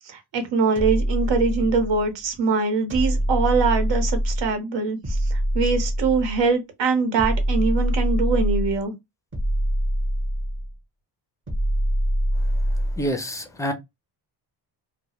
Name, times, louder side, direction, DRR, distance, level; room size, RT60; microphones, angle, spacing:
voice 1, 0.1-5.3 5.5-8.9, right 4 dB, 85° right, 0.8 m, -23 dB
sound 1, 0.8-2.1 2.9-4.5 5.0-6.5 7.2-8.8 9.3-10.7 11.5-13.1, equal, 30° right, 0.7 m, -24 dB
voice 2, 13.0-13.7, equal, 10° left, 0.3 m, -27 dB
2.1 x 2.0 x 2.8 m
wide cardioid pair, 145°, 42 cm